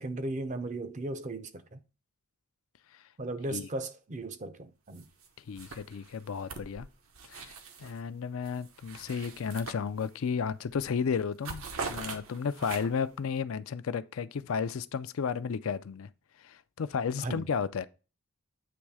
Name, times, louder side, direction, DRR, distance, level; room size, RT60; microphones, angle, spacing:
voice 1, 0.0-1.8 3.2-5.1 17.2-17.4, right 2 dB, 35° right, 0.5 m, -36 dB
sound 1, 4.9-5.3 5.6-8.0 8.4-10.3 10.7-10.9 11.2-13.1, right 4 dB, 75° right, 1.0 m, -42 dB
voice 2, 5.5-6.9 7.3-7.5 7.8-16.1 16.4-17.9, left 6 dB, 70° left, 0.4 m, -33 dB
8.6 x 3.1 x 4.7 m
head